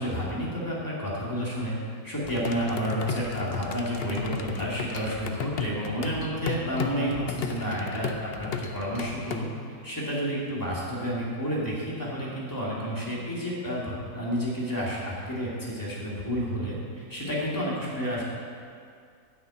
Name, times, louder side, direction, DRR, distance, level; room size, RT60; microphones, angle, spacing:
voice 1, 0.0-1.7 2.0-9.5 9.8-18.2, equal, 10° left, -7 dB, 2.6 m, -30 dB
sound 1, 2.2-9.4, left 6 dB, 60° left, 0.6 m, -34 dB
9.4 x 6.5 x 8.5 m, 2.2 s
omnidirectional pair, 1.8 m